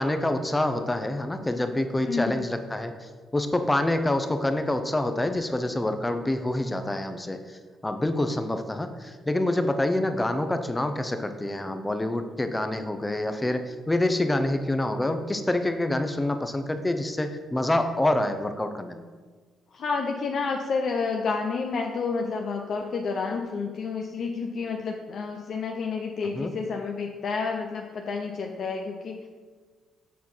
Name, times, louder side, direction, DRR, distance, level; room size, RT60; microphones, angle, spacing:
voice 1, 0.0-7.6 7.8-19.0 26.3-26.5, left 1 dB, 15° left, 8 dB, 0.7 m, -27 dB
voice 2, 2.1-2.5 19.7-29.3, left 4 dB, 60° left, 2 dB, 0.6 m, -30 dB
7.4 x 4.5 x 5.5 m, 1.5 s
cardioid pair, 90°, 0 cm